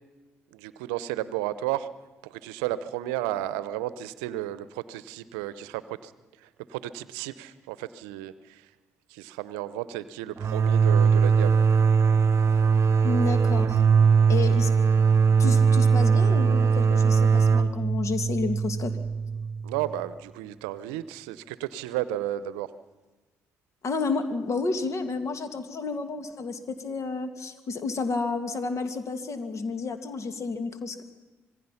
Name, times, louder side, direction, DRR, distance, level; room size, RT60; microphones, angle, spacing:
voice 1, 0.5-1.9 2.2-6.1 6.7-8.6 9.1-11.6 19.6-22.7, right 14 dB, 80° right, 16 dB, 0.7 m, -33 dB
sound 1, 10.4-19.9, right 6 dB, 45° right, 0.9 m, -21 dB
voice 2, 13.0-13.8 14.3-14.7 15.4-19.0 23.8-31.0, left 4 dB, 55° left, 9 dB, 2.2 m, -31 dB
26.5 x 19.5 x 5.8 m, 1.2 s
hypercardioid pair, 45°, 6 cm